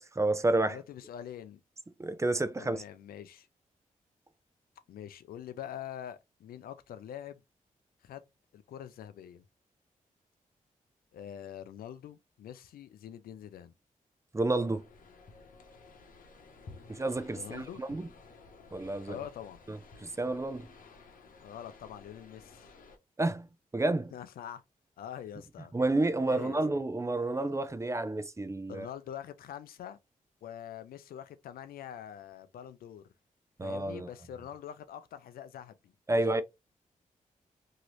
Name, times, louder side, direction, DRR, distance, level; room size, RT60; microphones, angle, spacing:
voice 1, 0.0-0.8 2.0-2.8 14.3-14.8 16.9-18.1 18.7-19.2 19.7-20.7 23.2-23.5 23.7-24.1 25.7-28.9 33.6-34.1 36.1-36.4, right 2 dB, 20° right, 0.5 m, -30 dB
voice 2, 0.7-1.6 2.6-3.5 4.9-7.4 8.0-8.2 8.5-9.4 11.1-13.7 17.3-17.8 19.1-19.6 21.4-22.7 24.1-24.6 25.0-25.7 26.2-26.6 28.7-30.0 30.4-33.0 33.6-36.4, left 10 dB, 85° left, 0.4 m, -44 dB
sound 1, 14.6-23.0, left 3 dB, 70° left, 0.9 m, -54 dB
3.0 x 2.8 x 2.6 m
cardioid pair, 50°, 15 cm